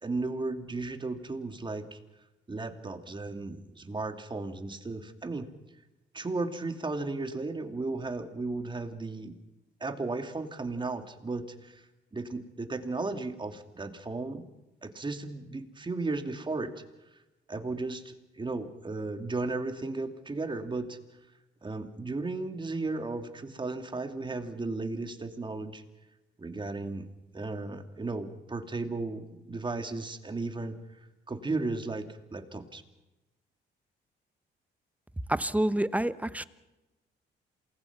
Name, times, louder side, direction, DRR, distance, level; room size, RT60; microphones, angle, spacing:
voice 1, 0.0-2.0 2.5-5.5 6.1-9.4 9.8-11.8 12.1-14.4 14.8-16.8 17.5-21.0 21.6-25.8 26.4-27.0 27.3-30.8 31.3-32.1 32.3-32.8, right 3 dB, 25° right, 7 dB, 2.6 m, -35 dB
voice 2, 35.3-36.4, right 1 dB, 5° right, 14 dB, 1.0 m, -28 dB
27.5 x 20.0 x 6.0 m, 1.0 s
cardioid pair, 90°, 20 cm